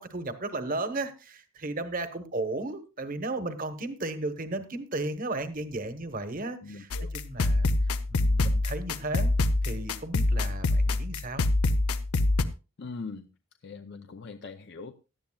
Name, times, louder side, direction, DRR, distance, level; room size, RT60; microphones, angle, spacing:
voice 1, 0.0-7.7 8.1-9.3 9.6-11.4, right 2 dB, 40° right, 10 dB, 1.1 m, -34 dB
voice 2, 6.6-7.1 12.8-13.3 13.6-14.9, left 4 dB, 50° left, 8 dB, 0.5 m, -41 dB
sound 1, 6.9-12.4, left 2 dB, 85° left, 0.7 m, -25 dB
17.5 x 11.5 x 2.3 m, 0.30 s
head